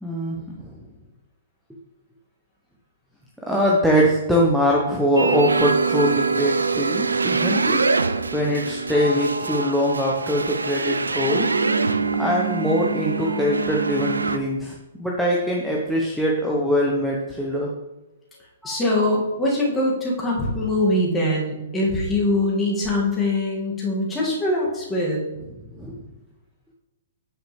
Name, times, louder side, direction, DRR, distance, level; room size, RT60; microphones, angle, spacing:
voice 1, 0.0-0.6 3.4-7.8 8.3-11.5 12.2-17.7 18.6-18.8 25.8-26.0, equal, ahead, -3 dB, 1.0 m, -22 dB
sound 1, 5.2-14.4, right 4 dB, 80° right, 0.4 m, -24 dB
voice 2, 18.6-25.2, left 1 dB, 15° left, -3 dB, 2.3 m, -22 dB
9.2 x 5.1 x 3.4 m, 1.0 s
figure-of-eight pair, 120°, 0 cm